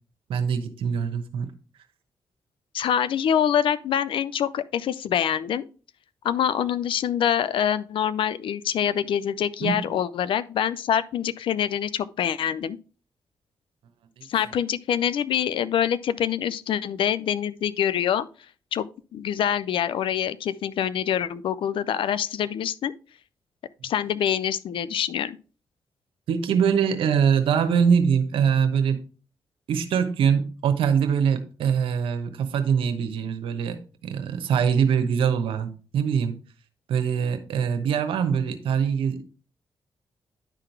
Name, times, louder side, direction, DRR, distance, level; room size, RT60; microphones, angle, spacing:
voice 1, 0.3-1.5 9.6-9.8 14.2-14.3 26.3-29.0 29.7-36.4 36.9-39.2, right 7 dB, 80° right, 1.0 m, -23 dB
voice 2, 2.7-5.7 6.2-12.8 14.3-18.3 18.7-18.9 19.1-22.9 23.8-25.4, left 9 dB, 75° left, 0.5 m, -25 dB
10.5 x 3.9 x 4.5 m
supercardioid pair, 45°, 9 cm